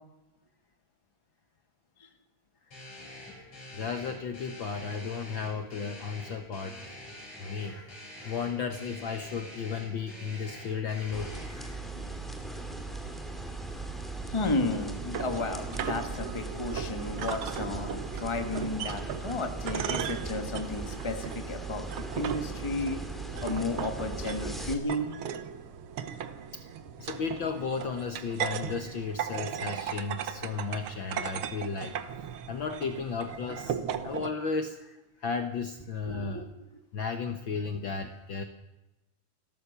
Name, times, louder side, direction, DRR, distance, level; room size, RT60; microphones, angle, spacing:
sound 1, 2.7-11.4, left 1 dB, 55° left, 9.4 m, -46 dB
voice 1, 3.7-6.8 7.1-11.8 26.1-26.2 27.0-31.9 32.5-33.8 34.0-36.5 36.9-38.4, left 5 dB, 85° left, 7 dB, 1.0 m, -34 dB
sound 2, 11.1-24.7, right 2 dB, ahead, 1.8 m, -38 dB
voice 2, 14.3-21.9 22.1-23.0 23.4-25.1 36.0-36.7, left 2 dB, 15° left, 6 dB, 1.0 m, -33 dB
sound 3, 14.7-34.3, right 8 dB, 85° right, 1.1 m, -37 dB
30.0 x 13.0 x 6.8 m, 1.0 s
omnidirectional pair, 3.8 m